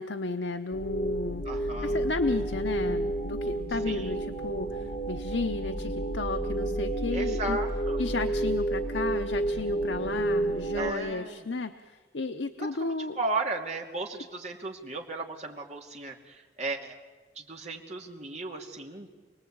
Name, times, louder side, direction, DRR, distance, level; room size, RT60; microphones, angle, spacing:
voice 1, 0.0-7.6 8.0-13.2, left 3 dB, 90° left, 8 dB, 0.8 m, -33 dB
sound 1, 0.7-10.9, right 1 dB, 30° left, 1.4 m, -30 dB
voice 2, 1.5-2.0 3.9-4.2 7.1-8.0 10.7-11.4 12.6-17.0 17.4-19.1, right 2 dB, 40° right, 1 dB, 2.6 m, -35 dB
27.5 x 19.0 x 8.7 m, 1.4 s
head